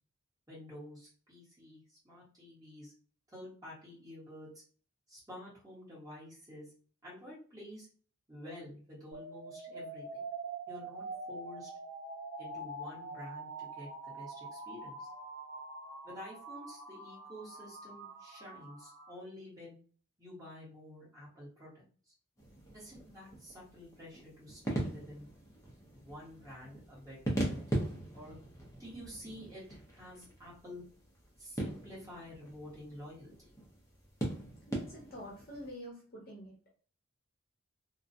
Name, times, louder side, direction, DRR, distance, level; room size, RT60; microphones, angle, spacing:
voice 1, 0.5-2.9 3.3-4.6 5.1-6.7 7.0-7.9 8.3-10.2 10.7-11.7 12.4-13.9 14.1-15.1 16.0-19.8 20.2-22.1 22.7-25.2 25.9-27.9 28.1-28.4 28.8-29.6 29.9-30.8 31.4-33.3, left 1 dB, 15° right, -8 dB, 1.2 m, -50 dB
sound 1, 9.1-19.1, right 3 dB, 50° right, 0.9 m, -45 dB
sound 2, 22.4-35.7, right 1 dB, 15° left, 0.5 m, -41 dB
voice 2, 34.7-36.5, equal, 45° left, -3 dB, 0.8 m, -47 dB
2.4 x 2.1 x 2.6 m, 0.41 s
head